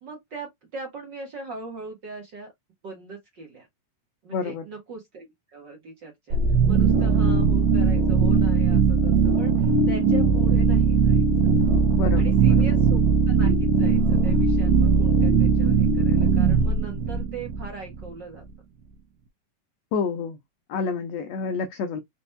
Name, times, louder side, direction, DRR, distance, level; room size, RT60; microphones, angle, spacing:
voice 1, 0.0-2.5 2.8-3.7 4.2-6.4 6.7-11.5 12.1-18.4, right 4 dB, 45° right, 1.5 m, -40 dB
voice 2, 4.3-4.6 12.0-12.7 19.9-20.4 20.7-22.0, left 5 dB, 80° left, 1.5 m, -29 dB
sound 1, 6.3-18.1, right 5 dB, 75° right, 1.7 m, -19 dB
5.2 x 4.2 x 2.2 m
omnidirectional pair, 3.9 m